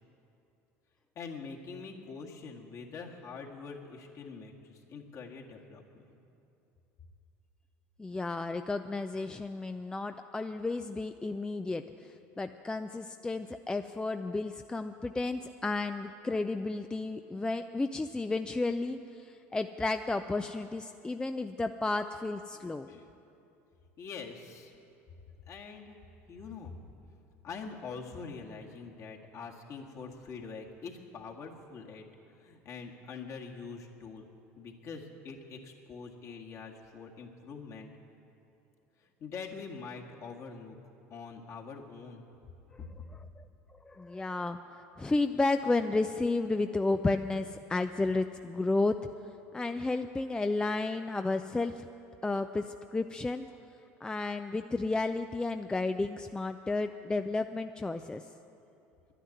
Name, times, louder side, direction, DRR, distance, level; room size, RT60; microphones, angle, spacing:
voice 1, 1.2-6.2 22.9-23.1 24.0-24.7 25.5-26.0 26.3-26.7 27.4-32.0 32.3-34.3 34.6-37.9 39.0-40.8 41.1-42.3 42.9-43.2, left 5 dB, 50° left, 0 dB, 1.9 m, -44 dB
voice 2, 8.0-22.9 43.4-43.5 43.9-49.0 49.5-51.9 52.2-53.5 54.0-58.2, left 3 dB, 10° left, 8 dB, 0.4 m, -32 dB
11.0 x 10.0 x 9.7 m, 2.7 s
supercardioid pair, 90°, 7 cm